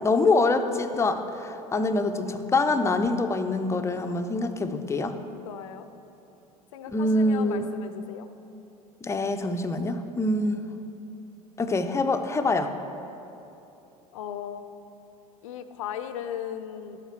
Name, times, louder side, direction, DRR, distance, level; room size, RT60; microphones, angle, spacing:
voice 1, 0.0-5.2 6.9-7.7 9.0-10.6 11.6-12.7, left 2 dB, 15° left, 8 dB, 0.6 m, -25 dB
voice 2, 5.4-5.8 6.7-8.3 14.1-14.6 15.4-17.0, left 9 dB, 60° left, 11 dB, 0.6 m, -36 dB
12.0 x 8.1 x 4.4 m, 3.0 s
figure-of-eight pair, 70°, 19 cm